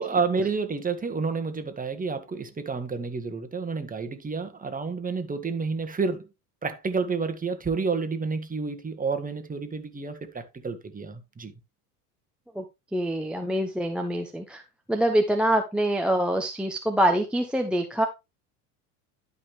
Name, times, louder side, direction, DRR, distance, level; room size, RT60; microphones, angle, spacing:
voice 1, 0.0-6.3 6.6-11.5, right 4 dB, 20° right, 1.7 m, -30 dB
voice 2, 12.9-14.6 14.9-18.1, right 1 dB, ahead, 1.0 m, -25 dB
12.0 x 5.5 x 3.3 m
hypercardioid pair, 80°, 45 cm